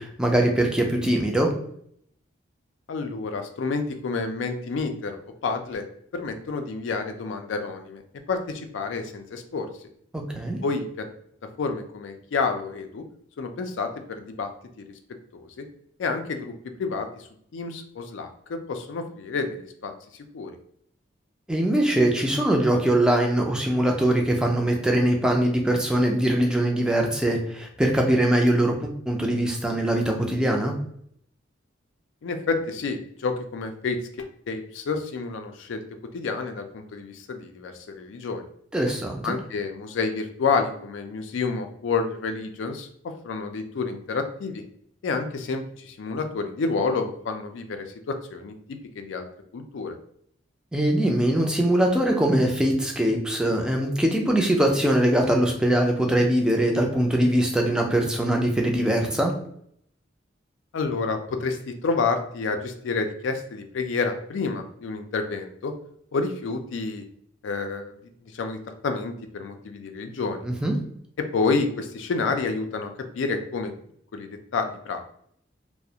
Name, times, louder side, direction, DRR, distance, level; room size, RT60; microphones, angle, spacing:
voice 1, 0.0-1.5 10.1-10.6 21.5-30.7 38.7-39.3 50.7-59.3 70.4-70.7, right 1 dB, 5° right, 1 dB, 0.3 m, -22 dB
voice 2, 2.9-5.8 6.1-8.0 8.3-9.7 10.6-11.1 11.6-13.0 13.4-14.5 15.3-15.6 16.0-16.5 16.8-17.3 17.5-19.9 20.3-20.6 32.2-35.8 36.1-38.4 39.2-44.6 45.0-49.3 49.5-50.0 60.7-65.7 66.1-67.0 67.4-68.0 68.3-70.4 71.3-73.7 74.1-75.0, left 4 dB, 85° left, 6 dB, 0.4 m, -29 dB
2.3 x 2.1 x 2.7 m, 0.68 s
head